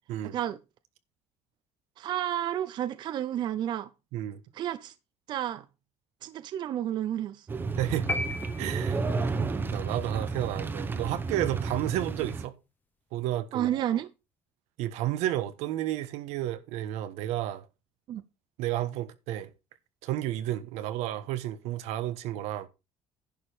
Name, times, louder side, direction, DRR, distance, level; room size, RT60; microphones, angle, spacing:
voice 1, 2.0-3.9 4.5-4.9 5.3-5.6 6.2-7.6 13.5-14.1 18.1-18.2, right 11 dB, 45° right, 0.6 m, -31 dB
sound 1, 7.5-12.5, right 4 dB, 20° right, 0.9 m, -32 dB
voice 2, 7.8-8.1 8.6-9.0 9.4-12.5 13.1-13.7 14.8-17.7 18.6-19.5 20.0-22.7, right 13 dB, 85° right, 1.3 m, -32 dB
sound 2, 8.1-9.3, left 2 dB, 15° left, 0.9 m, -34 dB
11.0 x 5.1 x 6.1 m
cardioid pair, 160°, 11 cm